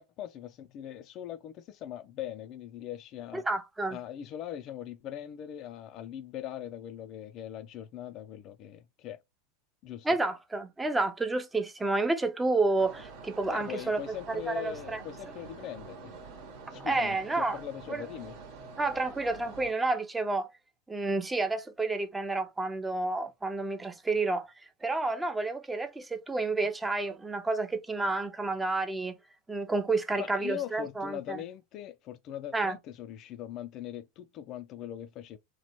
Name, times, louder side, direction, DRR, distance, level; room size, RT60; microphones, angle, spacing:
voice 1, 0.0-3.4 3.9-9.2 9.8-10.1 13.4-16.1 16.7-18.3 30.2-35.4, left 11 dB, 45° left, 0.3 m, -41 dB
voice 2, 3.3-4.0 10.0-14.0 14.3-15.0 16.8-17.6 17.9-18.0 18.8-20.5 20.9-24.5 24.8-29.2 29.5-31.4 32.5-32.8, right 3 dB, 10° right, 0.5 m, -30 dB
sound 1, 12.8-19.7, right 4 dB, 60° right, 1.0 m, -47 dB
2.9 x 2.2 x 2.9 m
hypercardioid pair, 95°, 0 cm